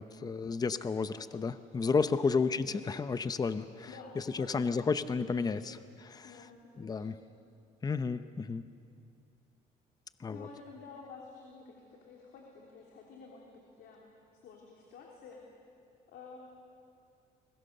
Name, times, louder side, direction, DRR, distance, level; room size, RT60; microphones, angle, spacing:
voice 1, 0.0-3.9 4.5-6.3 6.8-7.2 7.8-8.6 10.2-10.5, left 4 dB, 20° left, 12 dB, 0.8 m, -32 dB
voice 2, 2.0-2.4 3.9-4.9 5.3-5.5 6.2-7.2 10.3-15.4 16.1-16.4, left 4 dB, 70° left, -1 dB, 3.3 m, -51 dB
29.0 x 22.0 x 6.7 m, 2.4 s
cardioid pair, 110°, 17 cm